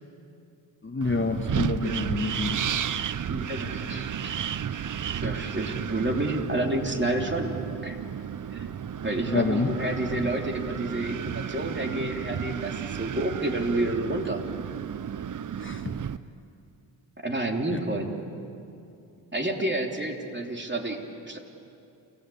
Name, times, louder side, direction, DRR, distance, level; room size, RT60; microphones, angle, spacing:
voice 1, 0.8-2.7 9.3-9.7 15.6-16.0 17.7-17.8, left 3 dB, 25° left, 5 dB, 1.5 m, -28 dB
Wind, 1.0-16.2, right 8 dB, 40° right, 0.7 m, -33 dB
voice 2, 3.3-4.3 5.2-8.0 8.5-8.7 9.0-14.4 17.2-18.1 19.3-21.4, right 1 dB, 25° right, 2 dB, 3.4 m, -29 dB
28.5 x 15.0 x 8.7 m, 2.6 s
supercardioid pair, 50°, 46 cm